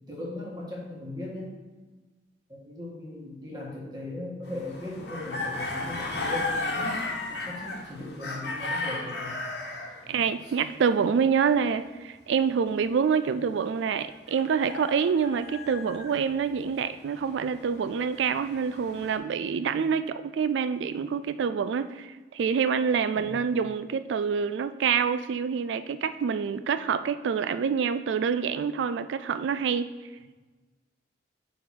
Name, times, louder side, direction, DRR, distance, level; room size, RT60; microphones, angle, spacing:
voice 1, 0.1-1.5 2.5-7.0 7.3-9.4 10.0-10.5 23.2-23.4, left 1 dB, 20° right, -4 dB, 1.6 m, -38 dB
sound 1, 4.4-10.0 14.3-16.3 17.0-19.2, left 2 dB, 65° left, 1.2 m, -34 dB
voice 2, 10.1-29.9, right 6 dB, 80° right, 12 dB, 0.3 m, -26 dB
5.8 x 4.2 x 6.2 m, 1.3 s
head